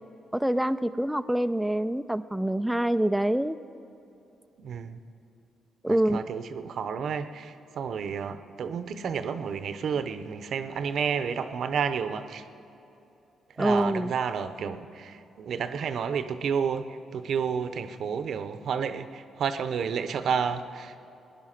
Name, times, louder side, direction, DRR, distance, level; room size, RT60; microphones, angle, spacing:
voice 1, 0.3-3.6 5.8-6.2 13.6-14.1, right 1 dB, 5° right, 10 dB, 0.3 m, -25 dB
voice 2, 4.6-5.0 5.9-12.4 13.6-20.9, right 6 dB, 70° right, 10 dB, 0.7 m, -31 dB
17.5 x 10.5 x 5.8 m, 2.9 s
cardioid pair, 80°, 0 cm